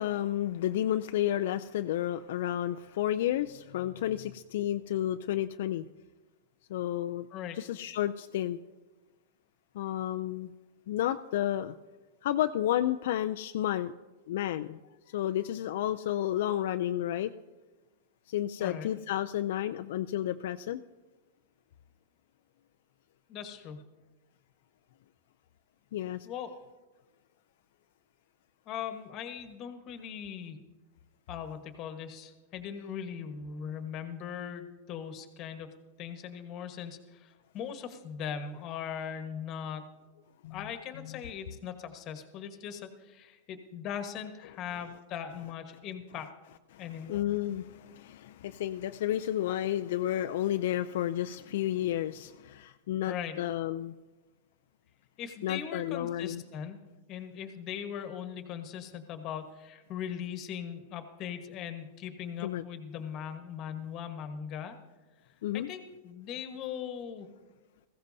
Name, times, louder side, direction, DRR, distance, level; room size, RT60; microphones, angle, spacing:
voice 1, 0.0-5.8 6.7-7.3 7.5-8.6 9.7-10.5 10.9-11.7 12.2-13.9 14.3-14.8 15.1-17.3 18.3-20.8 25.9-26.3 40.4-40.6 46.7-46.8 47.1-53.9 55.4-56.4 62.4-62.6 65.4-65.7, left 12 dB, 65° left, 8 dB, 0.4 m, -31 dB
voice 2, 18.6-18.9 23.3-23.9 26.2-26.5 28.7-30.6 31.3-39.9 40.5-46.3 46.8-47.2 53.1-53.4 55.2-56.8 57.1-64.8 65.5-67.3, left 8 dB, 35° left, 7 dB, 1.3 m, -40 dB
20.0 x 15.5 x 2.7 m, 1.2 s
supercardioid pair, 150°, 0 cm